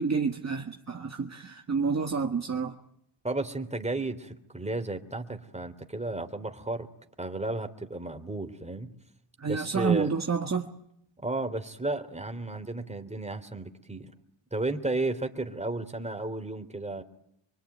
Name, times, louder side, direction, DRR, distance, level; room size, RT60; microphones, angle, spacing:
voice 1, 0.0-2.7 9.4-10.7, right 5 dB, 30° right, 1.9 m, -29 dB
voice 2, 3.2-6.9 7.2-8.9 9.5-10.1 11.2-14.1 14.5-17.0, right 2 dB, 15° right, 3.1 m, -33 dB
24.5 x 24.0 x 9.4 m
cardioid pair, 80°, 49 cm